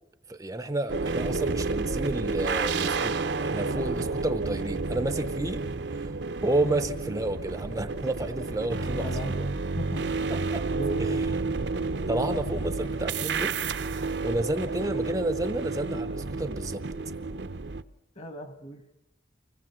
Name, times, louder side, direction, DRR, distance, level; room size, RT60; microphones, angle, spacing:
voice 1, 0.3-6.2 6.4-9.5 10.3-10.6 11.0-11.8 12.1-16.8, right 2 dB, 20° right, 10 dB, 0.7 m, -31 dB
sound 1, 0.9-17.8, right 3 dB, 65° right, 0.7 m, -30 dB
voice 2, 9.0-9.5 9.8-10.3 10.7-11.2 18.2-18.8, right 1 dB, 40° left, 8 dB, 1.9 m, -37 dB
25.0 x 18.0 x 7.4 m, 0.93 s
head